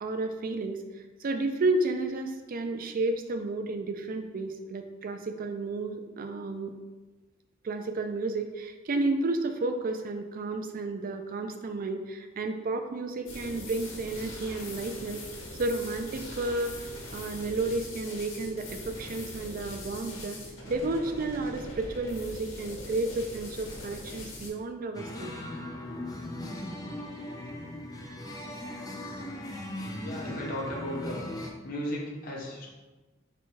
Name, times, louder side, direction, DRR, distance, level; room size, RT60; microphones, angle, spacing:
voice 1, 0.0-0.8 1.2-6.7 7.6-15.2 15.6-16.7 17.1-20.4 20.7-25.3 25.9-26.0, right 2 dB, 45° right, 6 dB, 0.4 m, -32 dB
sound 1, 13.3-24.5, left 1 dB, 70° left, 1.1 m, -42 dB
sound 2, 24.9-31.5, left 1 dB, 20° left, 0.5 m, -38 dB
voice 2, 30.0-31.3 31.6-32.7, equal, 45° left, -4 dB, 0.8 m, -35 dB
4.2 x 2.3 x 4.5 m, 1.2 s
head